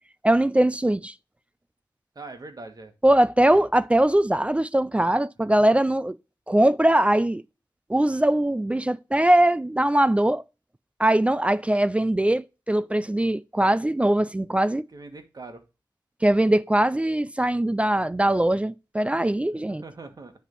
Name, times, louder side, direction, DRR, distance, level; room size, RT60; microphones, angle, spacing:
voice 1, 0.2-1.1 3.0-6.2 6.5-7.4 7.9-10.4 11.0-14.8 16.2-19.8, right 1 dB, 15° right, 0.3 m, -21 dB
voice 2, 2.1-2.9 3.4-3.6 5.6-5.7 14.9-15.6 19.7-20.3, right 3 dB, 50° right, 1.5 m, -42 dB
10.0 x 3.5 x 5.3 m
wide cardioid pair, 105°, 8 cm